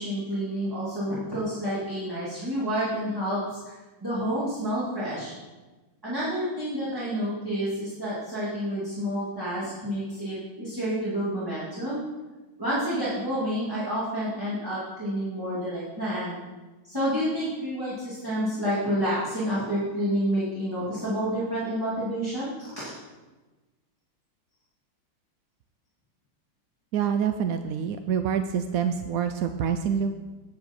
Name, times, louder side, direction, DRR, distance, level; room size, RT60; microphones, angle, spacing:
voice 1, 0.0-3.8 4.0-5.3 6.0-12.0 12.6-16.4 16.8-22.8, equal, 10° right, -10 dB, 2.5 m, -29 dB
voice 2, 26.9-30.1, right 7 dB, 80° right, 8 dB, 0.8 m, -26 dB
9.4 x 8.5 x 4.4 m, 1.2 s
omnidirectional pair, 2.0 m